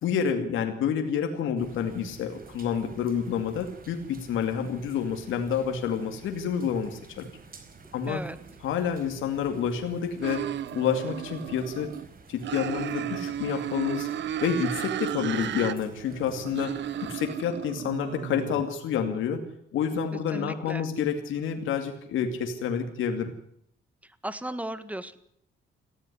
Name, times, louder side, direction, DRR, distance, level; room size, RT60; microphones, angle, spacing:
voice 1, 0.0-7.3 7.9-8.2 8.6-10.5 10.7-11.9 12.3-14.1 14.4-19.4 19.7-23.3, left 7 dB, 80° left, 5 dB, 2.5 m, -29 dB
sound 1, 1.6-17.2, right 5 dB, 45° right, 4.5 m, -51 dB
voice 2, 8.1-8.4 20.3-20.9 24.0-25.2, right 1 dB, 5° right, 14 dB, 1.7 m, -36 dB
sound 2, 10.2-12.1 12.4-15.7 16.1-18.6, right 10 dB, 65° right, 1.0 m, -34 dB
18.5 x 14.5 x 9.9 m, 0.70 s
cardioid pair, 90°, 20 cm